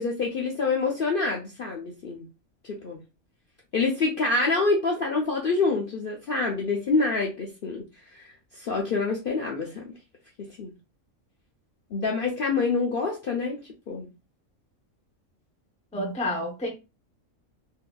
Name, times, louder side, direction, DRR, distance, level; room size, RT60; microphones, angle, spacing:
voice 1, 0.0-2.2 2.6-3.0 3.7-7.8 8.1-9.9 10.4-10.7 11.9-14.1, left 3 dB, 55° left, 0.6 m, -27 dB
voice 2, 15.9-16.7, left 1 dB, 10° left, 0.5 m, -29 dB
3.7 x 2.7 x 2.2 m
omnidirectional pair, 1.4 m